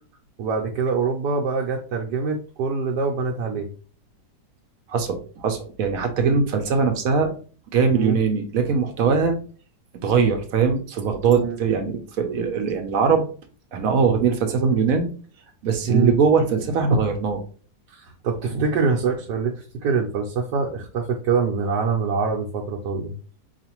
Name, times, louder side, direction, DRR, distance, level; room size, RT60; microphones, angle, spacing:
voice 1, 0.4-3.7 6.2-6.4 7.9-8.2 11.3-11.6 15.9-16.2 17.9-23.1, right 4 dB, 90° right, -1 dB, 1.2 m, -24 dB
voice 2, 4.9-7.3 7.7-9.4 10.0-13.2 13.7-15.1 15.6-17.4, right 5 dB, 65° right, 6 dB, 1.0 m, -21 dB
4.7 x 2.5 x 2.9 m, 0.39 s
omnidirectional pair, 1.8 m